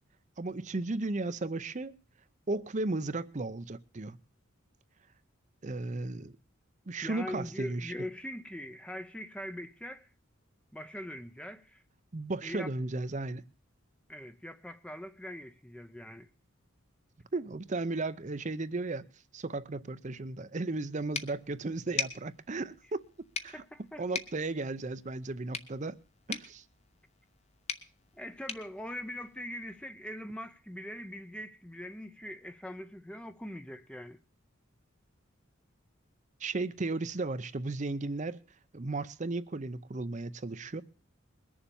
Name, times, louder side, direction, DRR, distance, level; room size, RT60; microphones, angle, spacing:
voice 1, 0.4-2.0 2.5-4.2 5.6-6.3 6.9-7.9 12.1-13.4 17.3-19.1 19.3-23.1 23.4-23.6 24.0-26.0 26.3-26.6 36.4-38.4 38.7-40.8, right 2 dB, 35° right, 0.6 m, -35 dB
voice 2, 7.0-10.1 10.7-11.8 12.4-12.7 14.1-16.3 23.5-24.2 28.1-34.2, left 1 dB, 5° left, 0.6 m, -42 dB
sound 1, 21.1-29.8, left 6 dB, 30° left, 1.0 m, -42 dB
21.5 x 7.2 x 7.0 m
head